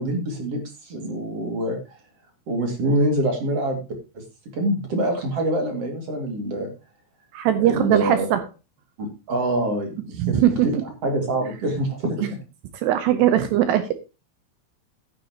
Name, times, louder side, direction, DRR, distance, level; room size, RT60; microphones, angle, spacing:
voice 1, 0.0-2.0 2.5-3.8 4.1-4.2 4.5-6.7 7.6-8.3 9.0-12.4, right 1 dB, 40° right, 3 dB, 2.5 m, -25 dB
voice 2, 7.3-8.4 10.2-10.8 12.8-13.9, right 11 dB, 75° right, 9 dB, 2.6 m, -20 dB
12.5 x 10.0 x 2.9 m, 0.30 s
omnidirectional pair, 5.5 m